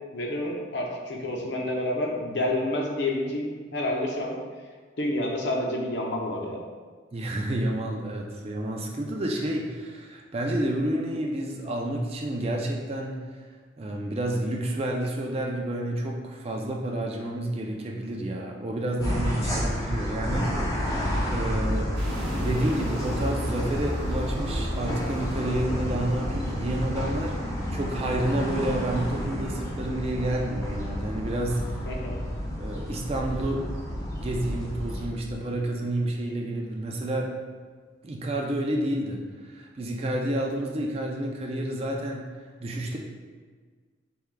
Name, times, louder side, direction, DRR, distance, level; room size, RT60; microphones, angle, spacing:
voice 1, 0.1-4.4 5.0-6.6 31.9-32.2, left 1 dB, 60° left, 0 dB, 0.6 m, -29 dB
voice 2, 7.1-13.2 13.8-21.9 22.2-31.8 32.6-33.6 34.2-37.3 38.0-42.3 42.6-43.0, right 1 dB, 30° right, 0 dB, 0.4 m, -30 dB
sound 1, 19.0-35.1, equal, 15° left, 0.6 m, -30 dB
sound 2, 21.9-26.2, equal, 60° right, 1.2 m, -38 dB
4.6 x 3.4 x 2.2 m, 1.5 s
head